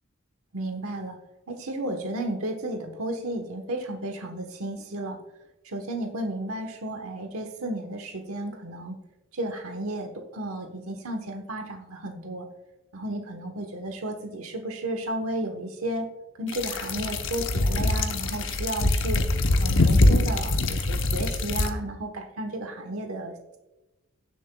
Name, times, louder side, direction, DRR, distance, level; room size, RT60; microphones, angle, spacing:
voice 1, 0.5-1.2 1.5-5.2 5.6-9.0 9.3-12.5 12.9-16.1 16.4-19.2 19.6-23.6, right 1 dB, 90° right, 4 dB, 1.1 m, -33 dB
sound 1, 16.5-21.7, left 2 dB, 65° left, 0.8 m, -23 dB
17.5 x 7.2 x 2.3 m, 1.0 s
head